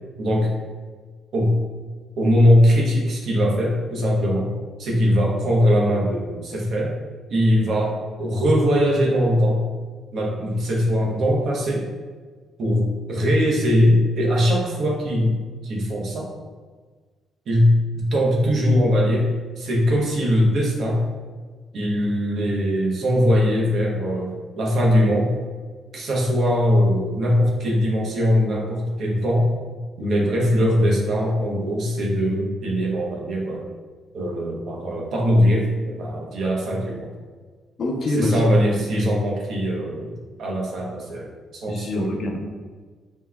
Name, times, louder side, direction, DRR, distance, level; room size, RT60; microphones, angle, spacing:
voice 1, 0.2-0.5 1.3-1.6 2.2-4.5 4.8-6.9 7.3-9.6 10.1-11.9 12.6-15.4 15.6-16.3 17.5-19.3 19.6-21.1 21.7-25.3 25.9-29.5 30.0-33.7 34.1-37.1 38.1-42.2, equal, 65° right, -2 dB, 1.1 m, -21 dB
voice 2, 37.8-38.8 41.7-42.4, left 1 dB, 55° left, 1 dB, 0.8 m, -25 dB
5.6 x 3.1 x 2.4 m, 1.4 s
cardioid pair, 90°, 0 cm